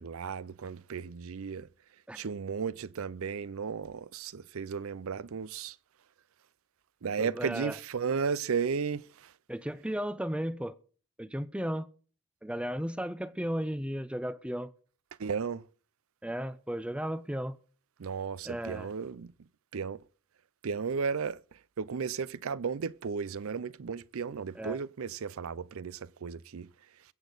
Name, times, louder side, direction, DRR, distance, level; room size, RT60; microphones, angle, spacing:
voice 1, 0.0-1.7 2.1-5.8 7.0-9.3 15.2-15.7 18.0-19.3 19.7-20.0 20.6-26.7, right 6 dB, 70° right, 0.5 m, -34 dB
voice 2, 7.2-7.7 9.5-10.8 11.2-11.9 12.4-14.7 16.2-17.6 18.5-18.9 24.6-24.8, equal, 5° right, 0.5 m, -34 dB
22.5 x 8.2 x 3.9 m
head